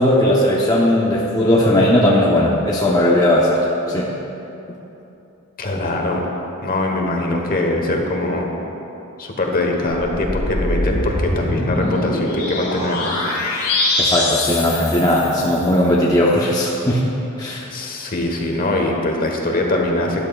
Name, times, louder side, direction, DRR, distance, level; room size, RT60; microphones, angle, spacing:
voice 1, 0.0-4.1 14.0-17.1 17.4-17.7, left 1 dB, 15° left, -5 dB, 0.8 m, -17 dB
voice 2, 5.6-6.2 6.6-8.5 9.2-13.2 17.7-20.2, left 2 dB, 40° left, 1 dB, 1.2 m, -22 dB
sound 1, 9.9-15.7, left 2 dB, 80° left, 2.2 m, -23 dB
13.0 x 11.0 x 2.4 m, 3.0 s
head